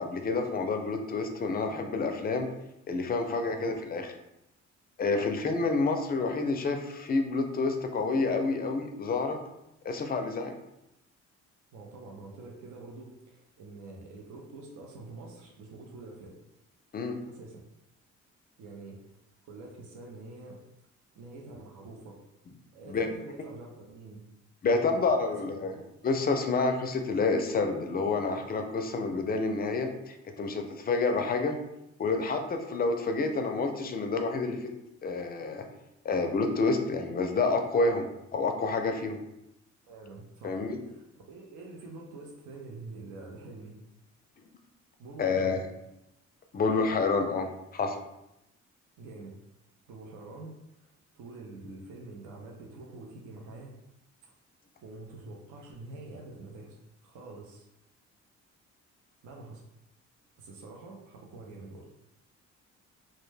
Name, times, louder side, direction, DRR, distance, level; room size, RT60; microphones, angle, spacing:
voice 1, 0.0-2.5 2.9-4.1 5.0-9.4 9.8-10.5 16.9-17.2 22.9-23.1 24.6-25.7 26.0-31.6 32.0-34.7 35.0-35.6 36.0-39.2 40.4-40.8 45.2-45.6 46.5-47.5 47.7-48.0, left 3 dB, 30° left, 5 dB, 0.4 m, -28 dB
voice 2, 3.3-3.7 5.2-5.3 11.7-16.4 17.3-17.6 18.6-19.0 19.4-20.6 21.2-22.2 22.7-24.2 24.6-25.8 39.9-43.7 45.0-45.6 49.0-49.3 49.9-50.5 51.2-53.7 54.8-56.8 57.0-57.7 59.2-59.6 60.4-61.9, right 3 dB, 75° right, -1 dB, 0.6 m, -46 dB
2.2 x 2.1 x 3.2 m, 0.87 s
cardioid pair, 90°, 30 cm